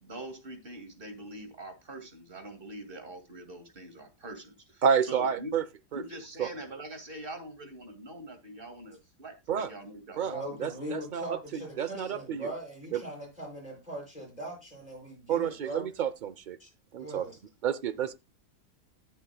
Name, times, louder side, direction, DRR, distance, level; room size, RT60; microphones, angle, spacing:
voice 1, 0.0-5.6 5.9-10.6 10.8-11.0, right 1 dB, 35° right, 2.5 m, -44 dB
voice 2, 4.8-5.6 5.9-6.0 6.4-6.5 9.5-9.7 10.2-10.3 10.6-12.5 12.9-13.0 15.3-16.6 16.9-17.3 17.6-18.1, right 7 dB, 85° right, 0.4 m, -29 dB
voice 3, 10.2-15.8 16.6-16.7 17.0-17.4, right 1 dB, 25° left, 7.8 m, -40 dB
19.5 x 7.2 x 2.3 m
omnidirectional pair, 1.7 m